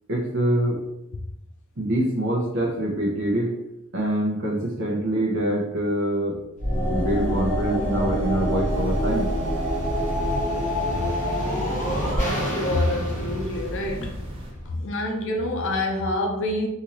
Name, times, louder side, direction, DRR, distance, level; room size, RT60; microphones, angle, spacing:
voice 1, 0.1-0.8 1.8-3.5 3.9-6.4 6.9-9.3, right 1 dB, 60° right, -1 dB, 0.8 m, -25 dB
sound 1, 6.6-14.7, equal, 40° left, 0.9 m, -26 dB
sound 2, 8.7-14.5, right 1 dB, 25° right, 0.6 m, -36 dB
voice 2, 12.2-14.2 14.7-16.7, left 1 dB, 65° left, 2 dB, 0.6 m, -26 dB
3.8 x 2.7 x 3.0 m, 0.89 s
head